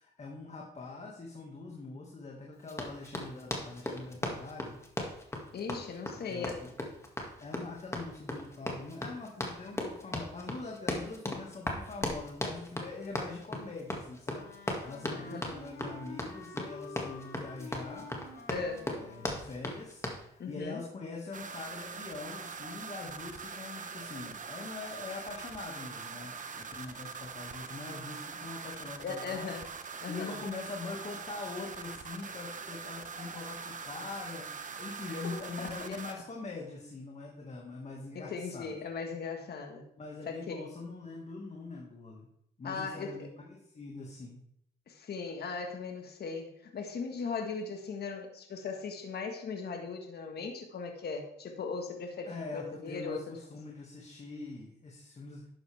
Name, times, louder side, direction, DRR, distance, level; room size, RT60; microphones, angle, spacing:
voice 1, 0.0-4.8 6.1-6.7 7.4-18.1 19.0-29.5 29.8-38.7 40.0-42.3 42.6-44.4 52.3-55.5, left 3 dB, 35° left, -1 dB, 2.1 m, -43 dB
Run, 2.7-20.2, left 1 dB, 15° left, 2.2 m, -37 dB
voice 2, 5.5-6.6 15.1-15.4 18.5-18.9 20.4-20.8 29.0-29.7 30.0-30.4 35.2-36.0 38.1-39.9 40.3-40.7 42.6-43.3 44.9-53.4, left 5 dB, 55° left, 4 dB, 1.7 m, -38 dB
Wind instrument woodwind instrument, 14.3-19.5, left 4 dB, 80° left, 3.8 m, -48 dB
sound 1, 21.3-36.1, right 5 dB, 40° right, 1.1 m, -43 dB
12.0 x 8.8 x 3.6 m, 0.75 s
cardioid pair, 90°, 20 cm